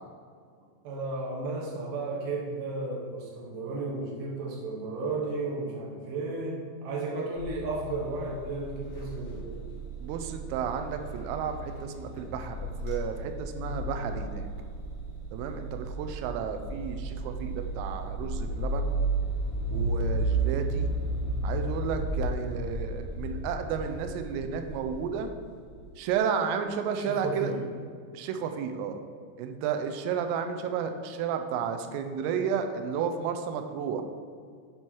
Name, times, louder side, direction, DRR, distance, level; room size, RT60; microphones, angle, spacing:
voice 1, 0.8-9.6 26.9-27.6, right 3 dB, 70° right, -4 dB, 2.0 m, -34 dB
sound 1, 7.4-25.9, right 2 dB, 60° left, 2.0 m, -33 dB
voice 2, 10.0-14.5 15.3-18.9 19.7-20.9 21.4-25.3 26.0-27.5 28.1-29.0 29.4-34.0, right 7 dB, 85° right, 6 dB, 3.3 m, -32 dB
11.0 x 4.6 x 4.6 m, 2.1 s
omnidirectional pair, 5.7 m